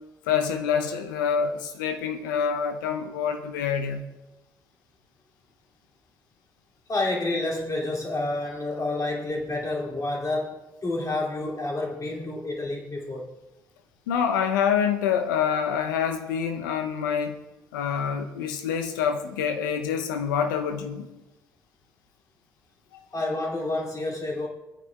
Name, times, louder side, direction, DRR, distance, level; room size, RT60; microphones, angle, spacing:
voice 1, 0.3-4.0 14.1-17.4 17.7-21.1, left 7 dB, 80° left, 7 dB, 0.7 m, -26 dB
voice 2, 6.9-13.3 23.1-24.5, left 2 dB, 35° left, -2 dB, 2.6 m, -29 dB
19.0 x 9.4 x 2.3 m, 1.0 s
hypercardioid pair, 45°, 10 cm